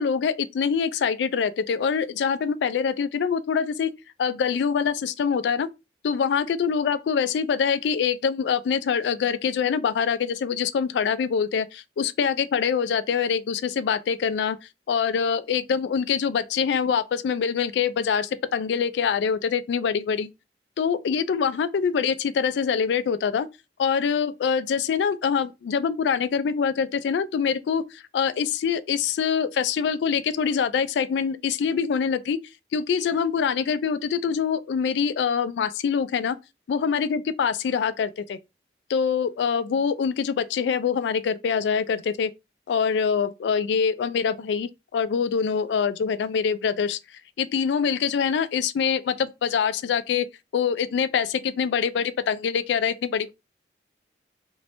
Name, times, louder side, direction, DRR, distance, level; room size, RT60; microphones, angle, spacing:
voice 1, 0.0-3.9 4.2-5.7 6.0-14.6 14.9-20.3 20.8-23.5 23.8-27.8 28.1-32.4 32.7-36.4 36.7-38.4 38.9-42.3 42.7-47.0 47.4-50.3 50.5-53.3, left 6 dB, 80° left, 0.3 m, -24 dB
2.9 x 2.6 x 3.1 m
head